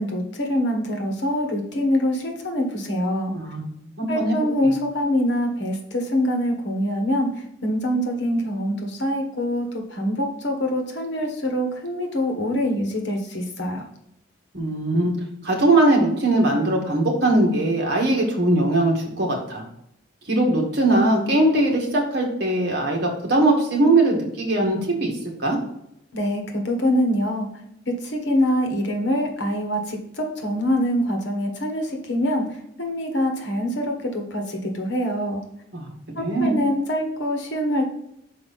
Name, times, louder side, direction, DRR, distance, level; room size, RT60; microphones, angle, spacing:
voice 1, 0.0-3.3 4.1-13.9 26.1-27.5 27.9-35.4 36.1-37.9, equal, 65° left, 3 dB, 1.5 m, -24 dB
voice 2, 3.3-4.4 14.5-15.1 15.4-19.6 20.3-25.1 25.4-25.6 35.7-35.8 36.2-36.6, right 2 dB, 55° right, -1 dB, 1.8 m, -20 dB
5.7 x 4.7 x 4.2 m, 0.79 s
head